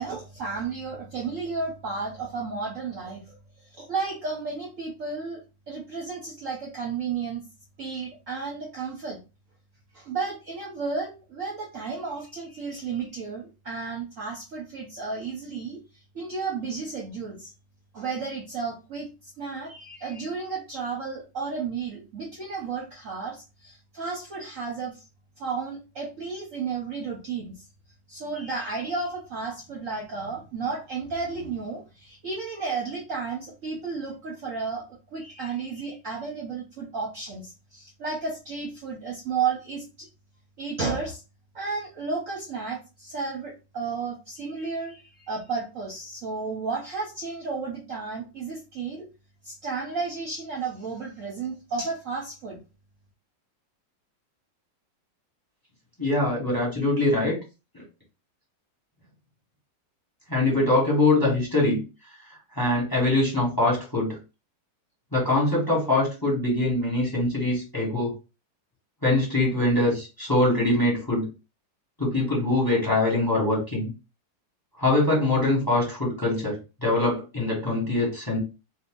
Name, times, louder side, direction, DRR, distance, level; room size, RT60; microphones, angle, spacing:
voice 1, 0.0-5.4 5.7-7.4 7.8-9.2 9.9-15.8 16.1-17.5 17.9-25.0 25.4-27.6 28.1-34.8 35.1-40.1 40.6-41.2 41.5-49.1 49.4-52.6, right 4 dB, 55° right, -2 dB, 0.9 m, -33 dB
voice 2, 56.0-57.4 57.7-57.8 60.3-61.8 62.6-64.2 65.1-68.1 69.0-71.2 72.0-73.9 74.8-78.4, left 2 dB, 15° left, -3 dB, 1.2 m, -23 dB
2.8 x 2.5 x 3.7 m, 0.30 s
omnidirectional pair, 2.0 m